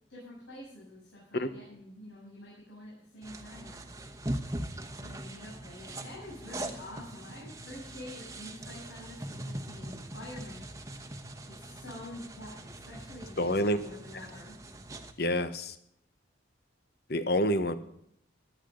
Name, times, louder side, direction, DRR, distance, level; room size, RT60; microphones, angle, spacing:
voice 1, 0.1-3.9 4.9-10.6 11.5-14.6, left 1 dB, 80° left, -6 dB, 7.3 m, -47 dB
sound 1, 3.2-15.1, right 1 dB, 15° right, 1.0 m, -41 dB
voice 2, 13.4-13.8 15.2-15.7 17.1-17.8, left 1 dB, 50° left, 11 dB, 1.1 m, -27 dB
17.5 x 12.5 x 3.9 m, 0.73 s
head